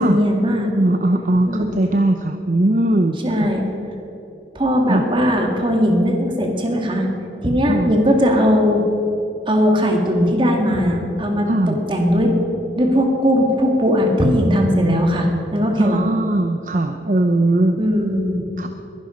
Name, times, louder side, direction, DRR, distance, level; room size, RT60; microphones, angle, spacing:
voice 1, 0.0-0.7 1.5-1.7 3.2-3.7 4.6-7.1 7.4-8.8 9.5-12.3 12.8-16.0 17.8-18.4, equal, 30° right, 2 dB, 2.2 m, -18 dB
voice 2, 0.8-3.5 4.9-5.0 7.7-7.9 11.5-11.8 15.8-17.8 18.6-18.7, right 1 dB, 45° right, 6 dB, 0.7 m, -19 dB
21.5 x 11.0 x 5.2 m, 2.9 s
head